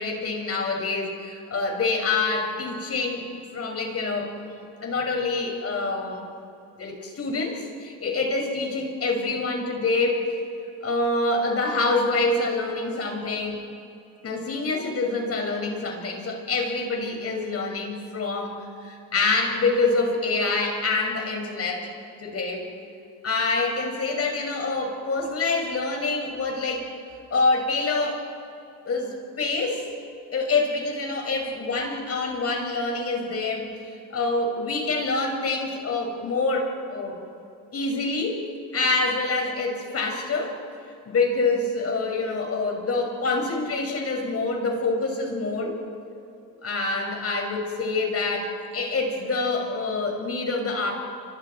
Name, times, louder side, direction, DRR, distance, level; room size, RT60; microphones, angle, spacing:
voice 1, 0.0-3.3 3.5-6.2 6.8-10.3 10.8-13.6 14.2-21.9 22.2-22.7 23.2-26.9 27.3-28.2 28.8-29.9 30.3-37.2 37.7-38.4 38.7-40.6 41.0-45.8 46.6-50.9, left 3 dB, 45° left, 1 dB, 6.8 m, -26 dB
30.0 x 25.5 x 4.7 m, 2.6 s
supercardioid pair, 85°, 34 cm